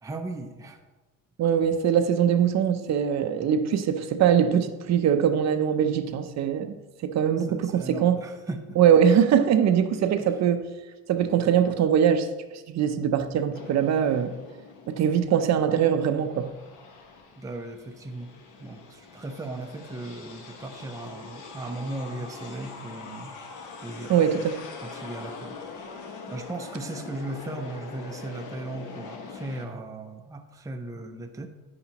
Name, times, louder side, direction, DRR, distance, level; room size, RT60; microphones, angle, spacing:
voice 1, 0.0-0.8 7.4-8.8 10.2-10.3 17.4-18.3 18.6-23.4 23.8-24.3 24.8-25.6 26.3-31.5, right 2 dB, 10° right, 0.6 m, -37 dB
voice 2, 1.4-6.7 7.0-8.2 8.8-10.7 11.1-12.3 12.7-14.3 14.9-16.5 24.1-24.6, right 8 dB, 50° right, 0.7 m, -22 dB
sound 1, 13.5-15.4 15.8-29.7, left 4 dB, 65° left, 1.4 m, -43 dB
9.9 x 9.7 x 3.0 m
cardioid pair, 135°, 34 cm